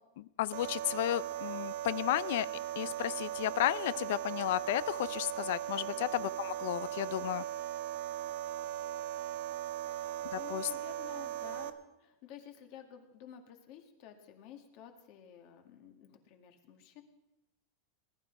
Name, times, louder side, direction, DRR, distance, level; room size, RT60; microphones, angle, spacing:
voice 1, 0.2-2.5 2.8-7.4 10.3-10.7, left 14 dB, 65° left, 18 dB, 0.5 m, -33 dB
sound 1, 0.5-11.7, right 12 dB, 65° right, 1.0 m, -38 dB
voice 2, 9.9-17.0, left 9 dB, 45° left, 4 dB, 2.1 m, -52 dB
19.5 x 12.0 x 4.7 m, 0.94 s
supercardioid pair, 160°, 0 cm